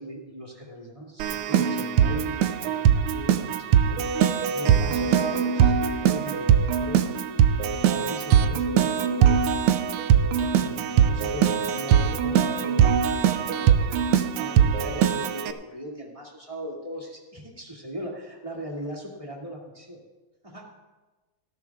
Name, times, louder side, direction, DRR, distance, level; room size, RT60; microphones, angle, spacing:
voice 1, 0.0-4.0 4.5-7.1 7.6-9.5 10.3-20.0 20.4-20.6, equal, 15° right, -2 dB, 2.2 m, -38 dB
Keyboard (musical), 1.2-15.5, right 8 dB, 85° right, 1.6 m, -21 dB
19.0 x 14.0 x 2.4 m, 1.2 s
omnidirectional pair, 2.3 m